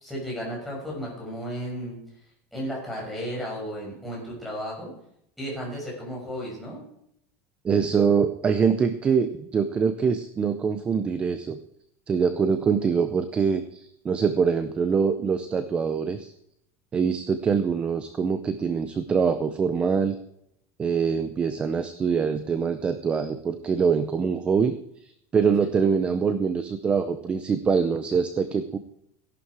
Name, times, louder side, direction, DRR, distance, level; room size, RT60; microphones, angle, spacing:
voice 1, 0.0-2.0 2.5-4.9 5.4-6.8, equal, ahead, -5 dB, 5.6 m, -34 dB
voice 2, 7.6-11.6 12.1-16.3 16.9-20.1 20.8-24.7 25.0-28.8, right 6 dB, 15° right, 11 dB, 0.6 m, -24 dB
16.0 x 11.5 x 4.8 m, 0.73 s
supercardioid pair, 180°, 8 cm